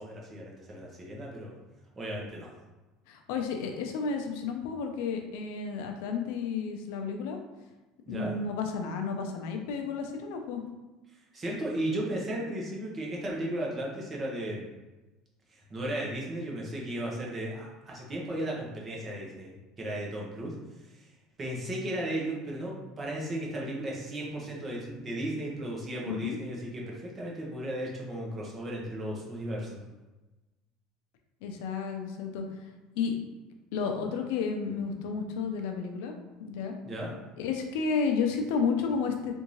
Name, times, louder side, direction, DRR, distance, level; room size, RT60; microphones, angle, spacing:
voice 1, 0.0-1.6 2.0-2.5 8.1-8.3 11.3-14.7 15.5-20.5 20.8-21.1 21.4-29.8 36.9-37.1, right 1 dB, 25° right, -3 dB, 1.0 m, -35 dB
voice 2, 3.1-7.4 8.1-10.6 26.1-26.4 31.4-32.4 32.9-33.2 33.7-36.7 37.4-39.3, left 5 dB, 80° left, 4 dB, 0.5 m, -32 dB
3.5 x 2.6 x 3.1 m, 1.1 s
supercardioid pair, 125°, 0 cm